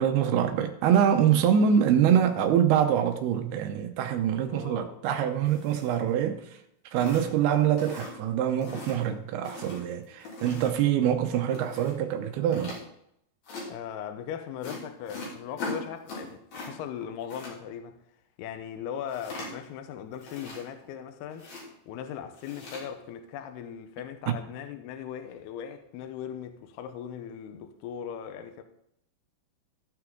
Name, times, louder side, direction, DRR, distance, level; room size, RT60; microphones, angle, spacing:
voice 1, 0.0-6.4 6.9-12.8 24.3-24.4, right 9 dB, 85° right, 2.2 m, -24 dB
voice 2, 4.4-5.0 13.7-18.0 18.4-21.5 21.9-28.6, left 9 dB, 80° left, 2.4 m, -39 dB
sound 1, 5.4-6.2 6.5-6.6 7.0-7.5 7.8-8.3 8.6-9.0 9.4-10.9 11.5-12.0 12.5-12.8 13.4-13.7 14.6-16.7 17.0-17.5 19.1-19.7 20.1-20.9 21.3-21.7 22.3-22.8, left 2 dB, 55° left, 4.7 m, -40 dB
15.0 x 6.0 x 3.8 m
omnidirectional pair, 5.5 m